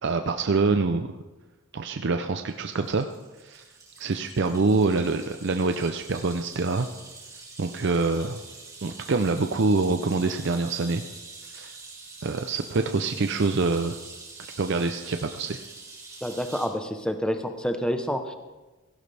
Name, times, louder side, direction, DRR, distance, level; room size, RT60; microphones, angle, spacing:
voice 1, 0.0-1.1 1.7-3.1 3.4-3.6 4.0-6.9 7.6-8.4 8.8-11.0 11.5-11.7 12.2-14.0 14.6-15.6, right 3 dB, 55° right, 7 dB, 0.5 m, -25 dB
sound 1, 2.5-16.7, right 3 dB, 15° right, 2.6 m, -45 dB
voice 2, 16.2-18.3, equal, 5° left, 7 dB, 0.8 m, -28 dB
17.0 x 15.5 x 3.4 m, 1.2 s
head